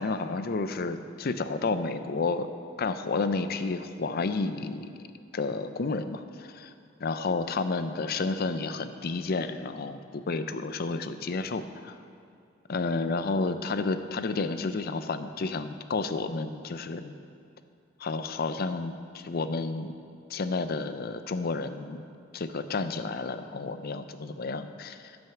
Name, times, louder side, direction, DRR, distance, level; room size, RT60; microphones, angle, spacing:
voice 1, 0.0-2.5 2.8-4.9 5.3-6.7 7.0-12.0 12.7-17.1 18.0-19.9 20.3-22.0 22.3-25.2, left 3 dB, 50° left, 10 dB, 0.5 m, -31 dB
10.5 x 6.3 x 7.1 m, 2.4 s
head